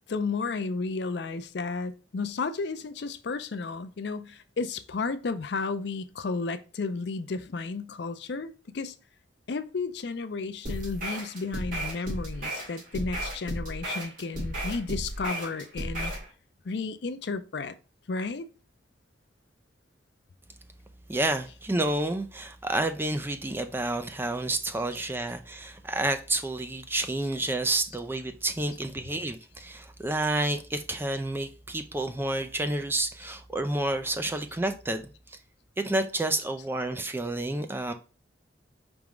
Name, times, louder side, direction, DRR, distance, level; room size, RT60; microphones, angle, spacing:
voice 1, 0.1-8.9 9.5-16.1 16.6-17.8 18.1-18.5, left 4 dB, 65° left, 0.5 m, -33 dB
sound 1, 10.6-16.3, right 1 dB, 45° right, 2.0 m, -34 dB
voice 2, 21.1-35.4 35.8-37.9, right 2 dB, 10° right, 0.4 m, -30 dB
4.9 x 3.5 x 3.0 m
head